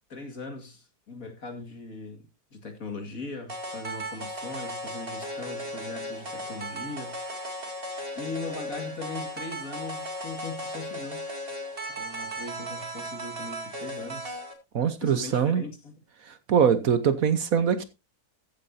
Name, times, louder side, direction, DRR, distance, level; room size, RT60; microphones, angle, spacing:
voice 1, 0.1-7.8 8.2-11.2 12.0-14.4 15.0-15.9, left 3 dB, 55° left, 2.5 m, -40 dB
sound 1, 3.5-14.5, equal, 35° right, 2.6 m, -36 dB
voice 2, 14.7-15.6 16.2-17.8, right 7 dB, 60° right, 1.3 m, -23 dB
15.0 x 9.0 x 2.7 m
omnidirectional pair, 1.8 m